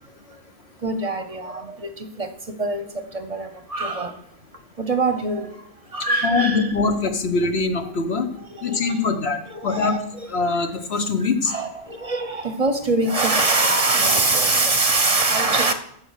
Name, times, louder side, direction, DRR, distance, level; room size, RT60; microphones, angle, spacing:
voice 1, 0.8-4.2 4.8-5.6 5.9-6.7 8.5-10.6 11.4-15.7, right 2 dB, 35° right, 9 dB, 0.8 m, -23 dB
voice 2, 6.2-8.3 8.6-10.0 10.3-11.5, left 4 dB, 65° left, 6 dB, 1.2 m, -23 dB
14.0 x 4.9 x 6.5 m, 0.72 s
omnidirectional pair, 1.2 m